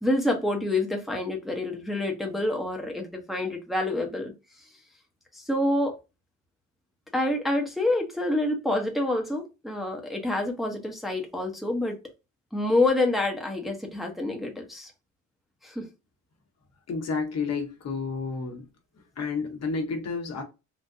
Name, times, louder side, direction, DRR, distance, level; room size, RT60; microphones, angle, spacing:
voice 1, 0.0-4.3 5.3-6.0 7.1-12.0 12.5-14.9 15.6-15.8, left 2 dB, ahead, 0.8 m, -27 dB
voice 2, 16.9-18.7 19.2-20.4, left 4 dB, 60° left, 1.2 m, -30 dB
3.8 x 2.4 x 2.6 m
cardioid pair, 90°, 30 cm